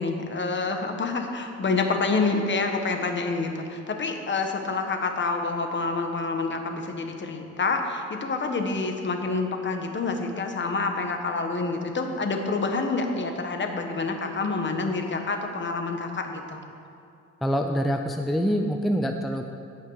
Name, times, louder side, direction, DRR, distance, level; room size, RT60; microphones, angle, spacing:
voice 1, 0.0-16.6, left 3 dB, 40° left, 4 dB, 1.3 m, -27 dB
voice 2, 17.4-19.4, equal, ahead, 4 dB, 0.5 m, -25 dB
17.0 x 5.7 x 4.8 m, 2.5 s
cardioid pair, 90°, 30 cm